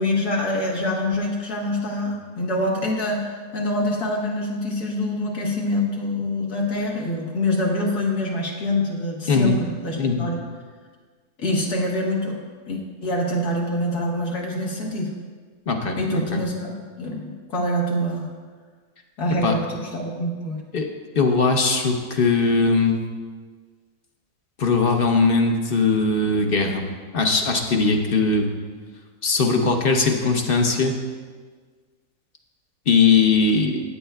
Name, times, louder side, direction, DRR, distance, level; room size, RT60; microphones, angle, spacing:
voice 1, 0.0-10.4 11.4-15.1 16.0-16.7 17.0-18.3 19.2-20.6, left 1 dB, 75° left, -2 dB, 1.9 m, -25 dB
voice 2, 15.7-16.0 16.3-16.4 19.4-19.6 20.7-20.9 21.1-23.0 24.6-26.9 27.1-28.5 29.2-30.9 32.9-33.8, left 4 dB, 45° left, 3 dB, 0.8 m, -20 dB
15.0 x 8.9 x 2.3 m, 1.5 s
omnidirectional pair, 1.7 m